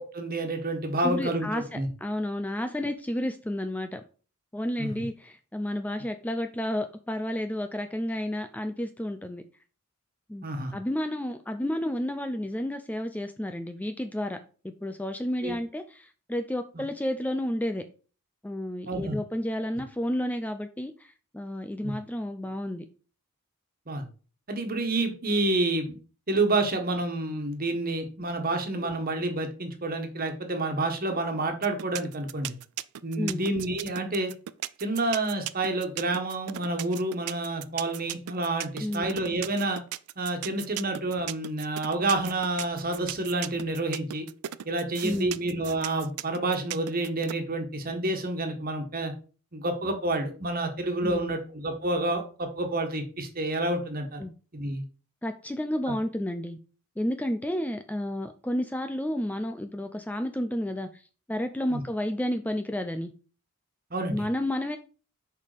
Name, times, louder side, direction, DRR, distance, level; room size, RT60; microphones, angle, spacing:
voice 1, 0.0-1.9 4.8-4.9 10.4-10.7 15.4-15.5 18.9-19.2 21.8-21.9 23.9-24.1 24.5-26.0 26.3-32.6 33.0-34.3 34.8-39.8 40.2-44.2 44.6-49.1 49.5-54.2 54.5-54.8 61.7-61.8 63.9-64.2, right 2 dB, 40° right, 1.5 m, -29 dB
voice 2, 1.0-4.0 4.5-9.4 10.3-10.4 10.7-14.4 14.6-17.8 18.4-22.9 28.8-29.0 33.2-33.4 38.8-39.1 45.0-45.4 51.0-51.4 54.2-54.3 55.2-56.6 57.0-61.0 61.3-63.1 64.1-64.8, left 1 dB, 5° left, 0.4 m, -31 dB
sound 1, 31.6-47.3, right 13 dB, 90° right, 0.4 m, -36 dB
6.6 x 5.3 x 5.1 m
head